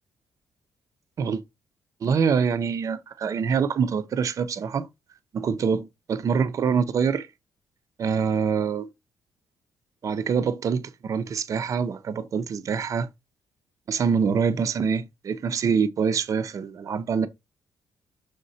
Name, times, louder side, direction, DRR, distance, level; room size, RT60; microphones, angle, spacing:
voice 1, 2.0-4.9 5.3-7.3 8.0-8.9 10.0-13.1 13.9-17.3, right 6 dB, 50° right, 0.7 m, -25 dB
6.5 x 3.7 x 4.2 m
cardioid pair, 120°, 7 cm